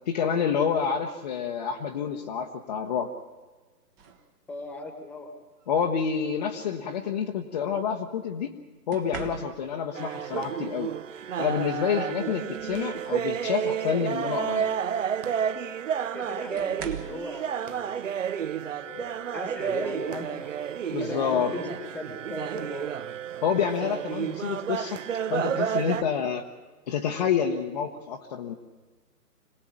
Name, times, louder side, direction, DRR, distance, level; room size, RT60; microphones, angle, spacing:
voice 1, 0.1-3.1 5.7-8.5 8.9-10.9 11.4-14.7 20.9-21.5 23.4-25.0 25.3-26.5 26.9-28.5, left 7 dB, 25° left, 2 dB, 1.0 m, -28 dB
sound 1, 4.0-4.3 5.6-5.8 8.9-9.9 11.6-11.7 12.2-13.3 13.8-14.0 15.4-15.5 16.6-17.3 19.0-19.2 19.7-20.0, right 6 dB, 15° right, 1.1 m, -42 dB
voice 2, 4.5-5.3 12.2-12.4 15.9-18.1 18.8-20.5 21.0-21.7 21.9-22.9, left 2 dB, 5° left, 6 dB, 1.6 m, -38 dB
sound 2, 9.9-26.0, right 8 dB, 50° right, 1.0 m, -31 dB
26.0 x 18.5 x 8.7 m, 1.3 s
hypercardioid pair, 150°, 48 cm